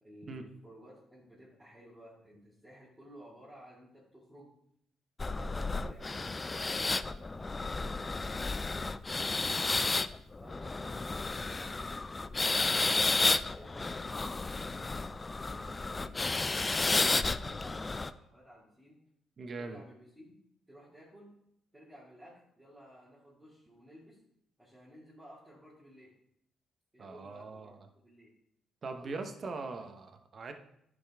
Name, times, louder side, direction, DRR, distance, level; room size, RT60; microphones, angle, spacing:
voice 1, 0.0-4.5 5.3-8.5 9.1-9.8 10.4-11.8 12.2-12.8 13.5-16.2 16.8-19.0 19.6-20.4 20.7-21.3 21.7-24.2 24.6-26.1 26.9-28.3 28.9-29.3, equal, 10° right, -8 dB, 2.4 m, -55 dB
sound 1, 5.2-18.1, left 3 dB, 25° left, 0.3 m, -32 dB
voice 2, 19.4-19.8 27.0-27.8 28.8-30.5, right 3 dB, 45° right, 6 dB, 1.0 m, -41 dB
10.5 x 5.4 x 3.6 m, 0.74 s
cardioid pair, 90°, 0 cm